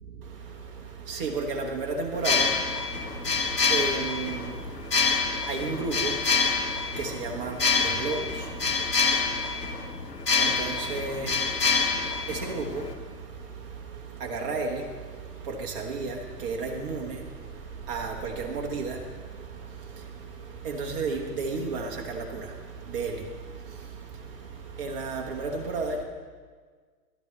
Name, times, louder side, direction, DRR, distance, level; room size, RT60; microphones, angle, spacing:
voice 1, 0.0-9.6 10.3-26.0, right 4 dB, 35° right, 1.2 m, -34 dB
sound 1, 2.1-12.9, left 5 dB, 90° left, 1.3 m, -27 dB
14.0 x 12.0 x 3.2 m
figure-of-eight pair, 120°, 47 cm